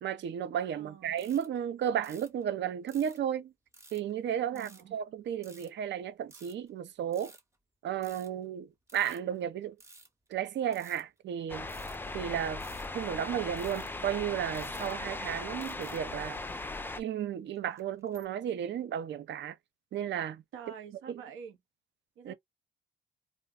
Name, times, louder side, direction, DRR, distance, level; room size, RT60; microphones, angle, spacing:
voice 1, 0.0-3.5 3.9-7.3 7.8-9.7 10.3-11.7 12.1-12.6 12.9-16.4 17.0-19.6 19.9-20.4 21.1-21.2 22.2-22.3, right 9 dB, 65° right, 0.6 m, -33 dB
voice 2, 0.7-1.1 4.5-5.0 20.5-21.6 22.2-22.3, right 7 dB, 85° right, 1.0 m, -47 dB
sound 1, 1.2-1.6 2.0-2.4 2.9-3.3 3.7-4.1 4.6-4.8 5.4-5.7 6.3-6.7 7.1-7.6 8.0-8.5 8.9-10.4 10.7-11.0 11.7-12.1 12.6-13.0 13.6-14.0 14.5-15.4 15.6-16.0 16.4-16.6 17.6-18.3, right 2 dB, 15° right, 0.8 m, -55 dB
sound 2, 11.5-17.0, left 2 dB, 10° left, 0.4 m, -38 dB
2.5 x 2.2 x 3.4 m
cardioid pair, 90°, 20 cm